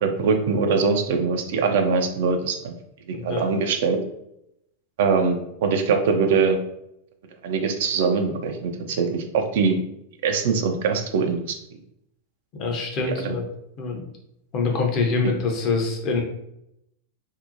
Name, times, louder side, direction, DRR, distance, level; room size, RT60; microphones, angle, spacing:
voice 1, 0.0-2.7 3.2-4.0 5.0-6.6 7.4-9.8 10.2-11.6 13.1-13.4, right 5 dB, 55° right, 5 dB, 0.3 m, -22 dB
voice 2, 3.1-3.4 12.6-13.5 13.8-14.0 14.5-16.2, left 4 dB, 35° left, 1 dB, 0.6 m, -25 dB
2.7 x 2.1 x 2.5 m, 0.79 s
figure-of-eight pair, 90°, 0 cm